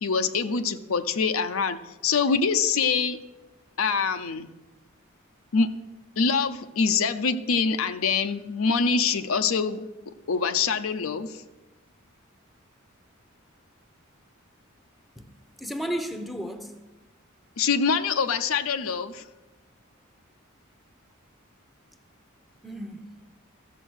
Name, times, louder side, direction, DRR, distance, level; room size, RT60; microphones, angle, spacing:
voice 1, 0.0-3.2 3.8-4.5 5.5-5.7 6.2-9.8 10.3-11.4 17.6-19.2, left 5 dB, 75° left, 0.6 m, -25 dB
voice 2, 15.6-16.8 22.6-23.3, equal, ahead, 0.8 m, -34 dB
13.5 x 6.9 x 6.3 m
head